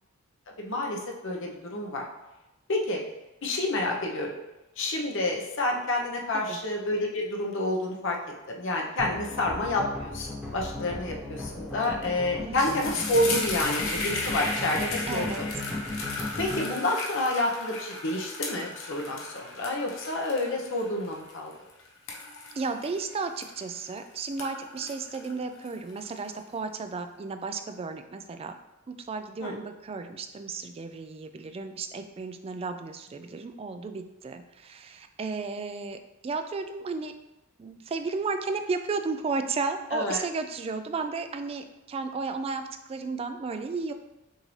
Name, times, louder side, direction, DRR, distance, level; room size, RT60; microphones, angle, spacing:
voice 1, 0.6-2.0 2.7-3.0 3.4-4.3 4.8-8.2 8.5-15.4 16.4-21.5 29.4-29.6 39.9-40.2, left 2 dB, 65° left, -1 dB, 0.8 m, -29 dB
sound 1, 9.0-16.7, left 2 dB, 5° right, 1.0 m, -36 dB
sound 2, 11.8-12.1 12.3-23.9 24.2-26.2, left 3 dB, 90° left, 0.8 m, -36 dB
voice 2, 12.4-13.0 15.1-15.4 22.6-28.5 28.9-37.1 37.6-43.9, right 4 dB, 30° right, 8 dB, 0.3 m, -34 dB
6.3 x 2.6 x 3.1 m, 1.0 s
head